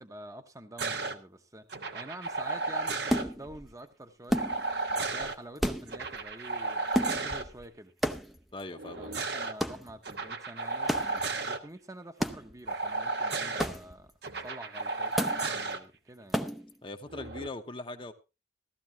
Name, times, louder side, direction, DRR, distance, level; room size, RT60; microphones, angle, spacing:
voice 1, 0.0-1.7 1.9-4.5 4.9-7.9 9.0-16.4, right 1 dB, 20° right, 1.0 m, -47 dB
sound 1, 0.8-1.1 1.7-3.2 4.3-5.3 5.9-7.4 8.7-9.5 10.0-11.6 12.7-13.7 14.2-15.8 17.1-17.5, right 3 dB, 65° right, 1.2 m, -33 dB
sound 2, 3.1-3.7 4.3-4.9 5.2-5.3 5.6-6.3 6.9-7.7 8.0-8.6 9.6-10.0 10.9-11.3 12.2-12.7 13.6-14.1 15.2-15.5 16.3-16.7, equal, ahead, 0.7 m, -32 dB
voice 2, 8.5-9.2 16.8-18.1, left 2 dB, 30° left, 1.0 m, -40 dB
15.5 x 13.0 x 2.9 m
head